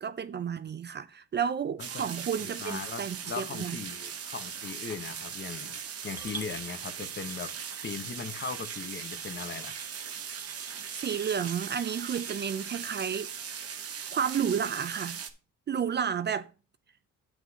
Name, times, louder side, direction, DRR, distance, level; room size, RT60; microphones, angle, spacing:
voice 1, 0.0-3.8 10.9-13.3 14.1-15.2 15.7-16.5, right 7 dB, 35° right, 0.5 m, -31 dB
sound 1, 1.8-15.3, right 7 dB, 50° right, 1.1 m, -39 dB
voice 2, 2.6-5.8 6.0-7.5 7.8-9.8, left 6 dB, 40° left, 1.0 m, -39 dB
Coin (dropping) / Glass, 6.2-12.5, right 3 dB, 5° right, 0.8 m, -49 dB
8.9 x 8.2 x 2.8 m
cardioid pair, 90°, 30 cm